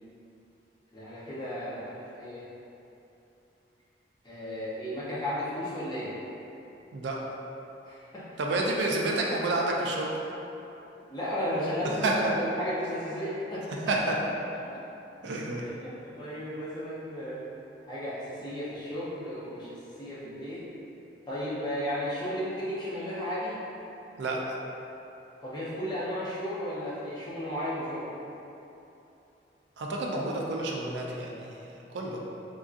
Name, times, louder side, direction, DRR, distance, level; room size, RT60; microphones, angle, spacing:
voice 1, 0.9-2.4 4.2-6.1 7.8-8.2 8.9-9.0 11.1-14.2 14.7-14.8 15.6-17.4 17.9-20.7 21.3-23.6 25.4-28.1, equal, 25° left, -9 dB, 0.6 m, -34 dB
voice 2, 8.4-10.1 12.0-12.3 13.9-14.0 15.2-15.6 24.2-24.6 29.8-31.7 31.9-32.2, right 2 dB, 70° right, -1 dB, 0.4 m, -29 dB
3.6 x 2.6 x 2.4 m, 2.9 s
head